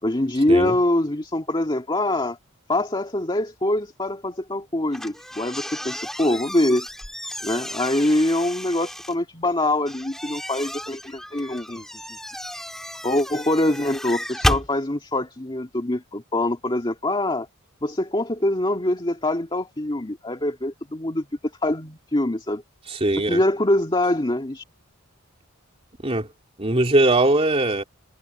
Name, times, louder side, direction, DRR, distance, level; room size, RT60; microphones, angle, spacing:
voice 1, 0.0-2.4 2.7-6.9 7.4-11.8 13.0-17.5 17.8-21.3 21.6-22.6 23.2-24.6, left 1 dB, 20° left, 2.1 m, -24 dB
sound 1, 4.9-9.1 9.9-14.7, equal, ahead, 4.9 m, -32 dB
voice 2, 22.9-23.4 26.0-26.3 26.6-27.8, right 2 dB, 25° right, 3.0 m, -20 dB
head